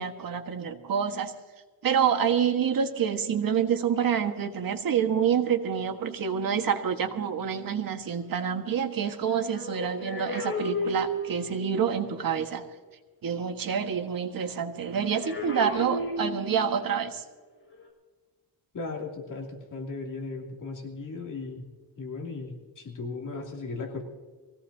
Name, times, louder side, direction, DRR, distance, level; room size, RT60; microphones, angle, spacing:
voice 1, 0.0-1.3 1.8-12.6 13.2-17.2, right 7 dB, 55° right, 5 dB, 1.6 m, -27 dB
sound 1, 9.0-11.7 14.9-16.8 17.7-17.9, left 1 dB, 30° left, 5.5 m, -34 dB
voice 2, 18.7-21.7 22.0-24.0, left 3 dB, 50° left, 0 dB, 2.8 m, -36 dB
23.5 x 17.0 x 2.8 m, 1.4 s
wide cardioid pair, 130°, 40 cm